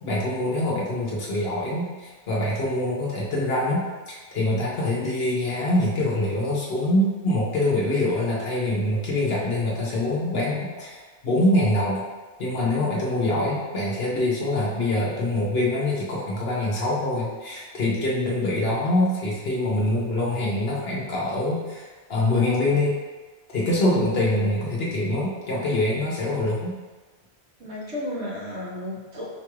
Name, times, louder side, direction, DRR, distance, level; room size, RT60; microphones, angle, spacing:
voice 1, 0.0-12.0 12.4-22.9 23.5-26.7, left 1 dB, 65° left, -5 dB, 1.0 m, -24 dB
voice 2, 27.6-29.3, left 1 dB, 90° right, -4 dB, 1.3 m, -33 dB
5.8 x 2.3 x 3.1 m, 1.3 s
omnidirectional pair, 1.1 m